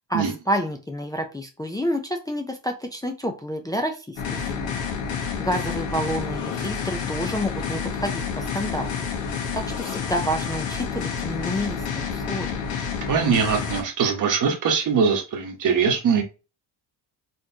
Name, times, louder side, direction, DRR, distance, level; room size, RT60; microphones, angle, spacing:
voice 1, 0.1-4.7 5.4-9.1 9.5-12.6, equal, 10° left, 0.4 m, -29 dB
sound 1, 4.1-13.8, left 6 dB, 80° left, 1.5 m, -29 dB
voice 2, 13.1-16.2, right 6 dB, 45° right, 1.1 m, -22 dB
4.4 x 3.0 x 2.8 m
cardioid pair, 135°, 43 cm